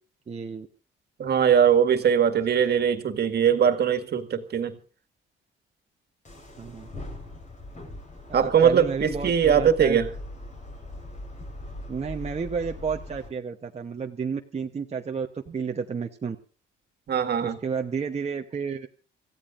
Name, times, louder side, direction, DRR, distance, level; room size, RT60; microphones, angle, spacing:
voice 1, 0.3-0.7 6.6-6.9 8.3-10.0 11.9-16.4 17.4-18.9, right 6 dB, 35° right, 1.0 m, -31 dB
voice 2, 1.2-4.7 8.3-10.1 17.1-17.6, right 8 dB, 55° right, 2.0 m, -21 dB
sound 1, 6.2-13.3, left 2 dB, 35° left, 4.9 m, -40 dB
26.5 x 15.0 x 2.6 m
cardioid pair, 90°, 20 cm